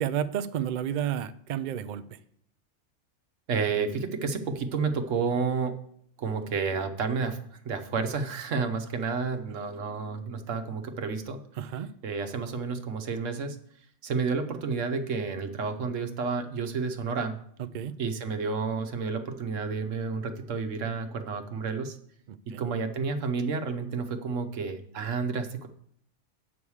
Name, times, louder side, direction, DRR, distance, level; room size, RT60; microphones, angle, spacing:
voice 1, 0.0-2.2 11.6-11.9 17.7-17.9 22.5-22.6, right 9 dB, 60° right, 13 dB, 0.5 m, -31 dB
voice 2, 3.5-5.7 6.2-7.4 7.6-11.4 12.0-13.6 14.0-17.4 18.0-22.0 22.6-25.7, right 5 dB, 85° right, 7 dB, 1.3 m, -30 dB
8.5 x 7.0 x 4.8 m, 0.67 s
omnidirectional pair, 1.3 m